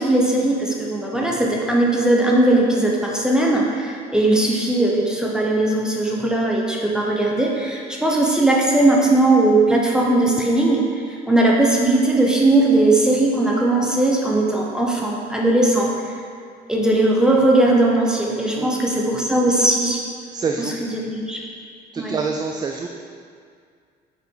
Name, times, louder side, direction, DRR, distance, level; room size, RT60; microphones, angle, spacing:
voice 1, 0.0-10.8 11.3-15.9 16.7-20.0 20.9-21.4 22.0-22.1, right 2 dB, 5° right, -3 dB, 0.8 m, -18 dB
voice 2, 18.5-19.1 20.3-20.7 21.9-22.9, right 5 dB, 25° right, 3 dB, 0.3 m, -27 dB
5.5 x 5.1 x 4.5 m, 2.2 s
cardioid pair, 110°, 17 cm